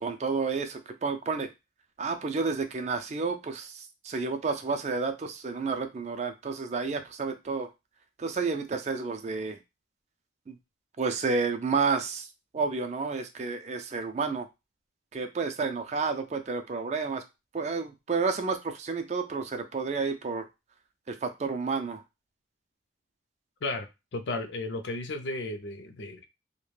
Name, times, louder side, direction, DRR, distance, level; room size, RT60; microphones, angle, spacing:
voice 1, 0.0-1.5 2.0-7.7 8.2-9.6 10.5-10.6 11.0-12.3 12.5-14.5 15.1-17.2 17.5-20.5 21.1-22.0, right 4 dB, 35° right, 7 dB, 0.3 m, -30 dB
voice 2, 24.1-26.3, left 2 dB, 65° left, 7 dB, 0.4 m, -34 dB
2.3 x 2.1 x 3.1 m, 0.23 s
head